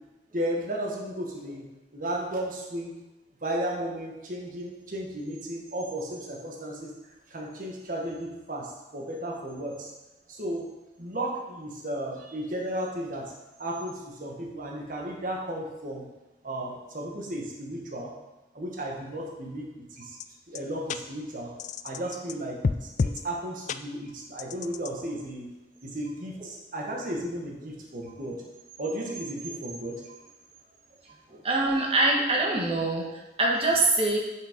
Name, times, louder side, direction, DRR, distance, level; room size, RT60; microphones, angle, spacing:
voice 1, 0.3-1.7 1.9-2.9 3.4-6.9 7.3-9.9 10.3-10.6 11.0-13.2 13.6-16.1 16.4-18.1 18.5-20.2 20.5-21.5 21.8-25.5 25.8-28.4 28.8-30.1, right 1 dB, 50° right, -1 dB, 1.4 m, -34 dB
sound 1, 20.2-20.3 20.6-20.7 20.9-21.0 21.6-22.4 22.6-23.2 23.7-23.8 24.4-24.9, left 4 dB, 40° left, 0.3 m, -29 dB
voice 2, 31.3-34.2, right 2 dB, 30° right, -1 dB, 1.4 m, -25 dB
6.5 x 6.3 x 5.1 m, 1.0 s
head